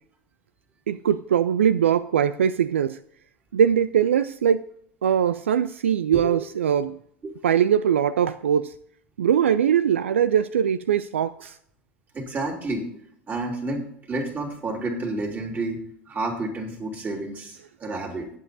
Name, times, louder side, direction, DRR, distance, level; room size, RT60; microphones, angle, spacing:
voice 1, 0.9-3.0 3.5-4.6 5.0-7.0 7.4-8.7 9.2-11.6, right 8 dB, 75° right, 0.4 m, -21 dB
voice 2, 12.1-12.9 13.3-18.3, right 2 dB, 25° right, 3.1 m, -30 dB
19.5 x 7.9 x 2.7 m
figure-of-eight pair, 80°, 7 cm